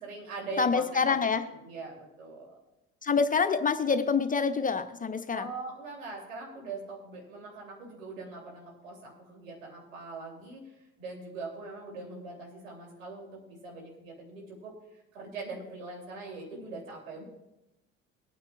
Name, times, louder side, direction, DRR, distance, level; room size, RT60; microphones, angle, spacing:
voice 1, 0.0-2.6 5.3-17.2, right 3 dB, 80° right, -2 dB, 3.0 m, -42 dB
voice 2, 0.6-1.4 3.0-5.5, left 5 dB, 20° left, 9 dB, 0.7 m, -26 dB
21.5 x 9.5 x 2.4 m, 0.94 s
figure-of-eight pair, 60°, 39 cm